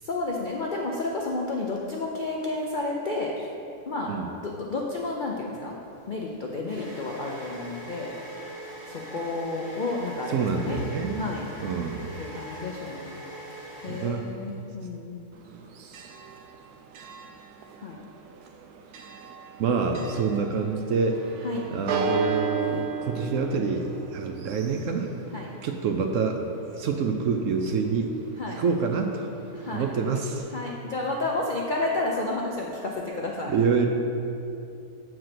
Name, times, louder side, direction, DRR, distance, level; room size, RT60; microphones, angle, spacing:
voice 1, 0.0-3.3 3.9-4.1 4.4-5.8 6.1-8.1 8.9-10.8 11.2-11.5 12.2-13.2 13.8-15.2 17.8-18.0 21.4-21.6 25.3-25.5 28.4-28.6 29.5-29.9 30.5-33.5, left 2 dB, 60° left, -2 dB, 0.5 m, -31 dB
sound 1, 5.9-14.6, right 1 dB, 45° right, 1.9 m, -42 dB
voice 2, 10.3-11.2 11.6-12.1 13.9-14.3 19.6-21.2 21.7-25.1 25.6-26.4 26.7-28.1 28.5-29.3 29.7-30.5 33.5-33.9, right 5 dB, 65° right, 4 dB, 0.8 m, -26 dB
Church bell, 15.3-30.4, right 5 dB, 90° right, 1.2 m, -36 dB
7.7 x 4.6 x 5.9 m, 2.7 s
omnidirectional pair, 1.6 m